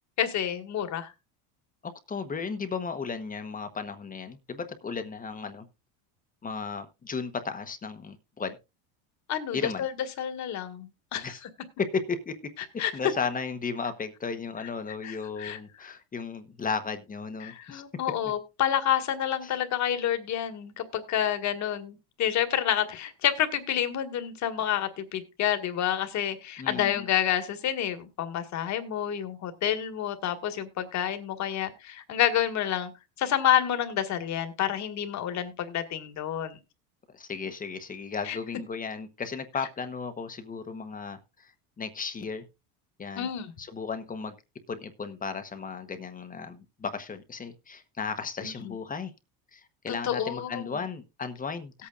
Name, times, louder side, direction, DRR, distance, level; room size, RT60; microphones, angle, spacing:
voice 1, 0.2-1.1 9.3-9.9 10.2-11.3 12.8-12.9 15.0-15.6 17.4-32.9 33.2-36.6 38.2-38.4 43.2-43.5 48.4-48.7 49.9-50.8, left 10 dB, 45° left, 1.8 m, -29 dB
voice 2, 1.8-5.7 6.4-8.6 9.5-9.9 11.2-11.4 11.8-12.4 12.9-17.8 18.2-18.3 19.4-19.5 26.6-27.1 37.1-41.5 41.8-42.4 43.0-43.3 43.6-44.3 44.7-49.1 49.5-51.7, left 5 dB, 20° left, 1.0 m, -35 dB
18.0 x 8.5 x 2.5 m
cardioid pair, 130°, 38 cm